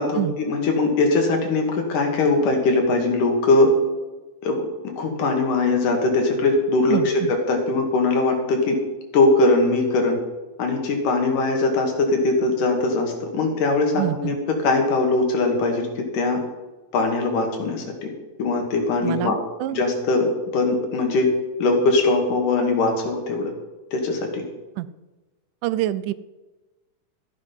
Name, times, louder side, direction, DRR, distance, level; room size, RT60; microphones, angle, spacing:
voice 1, 0.0-3.7 4.4-8.8 9.1-10.2 10.6-16.4 16.9-17.8 18.4-19.4 19.7-21.3 21.6-23.5 23.9-24.4, left 3 dB, 85° left, 3 dB, 3.7 m, -21 dB
voice 2, 6.9-7.3 14.0-14.4 19.0-19.8 24.8-24.9 25.6-26.1, right 14 dB, 85° right, 16 dB, 2.1 m, -26 dB
14.0 x 9.7 x 5.7 m, 1.1 s
omnidirectional pair, 3.6 m